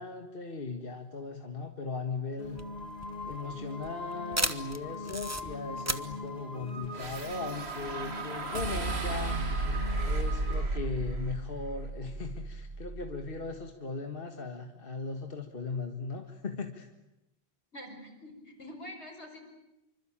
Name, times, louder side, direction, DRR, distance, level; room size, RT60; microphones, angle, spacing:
voice 1, 0.0-2.6 3.2-9.4 10.0-16.9, left 4 dB, 55° left, 5 dB, 1.9 m, -38 dB
sound 1, 2.4-10.6, left 1 dB, 35° left, 5.0 m, -41 dB
sound 2, 2.4-7.6, right 2 dB, 15° right, 1.2 m, -36 dB
sound 3, 6.9-13.3, right 2 dB, 70° right, 2.4 m, -34 dB
voice 2, 17.7-19.4, left 1 dB, 85° left, 4 dB, 6.1 m, -45 dB
26.5 x 25.0 x 8.8 m, 0.93 s
omnidirectional pair, 1.1 m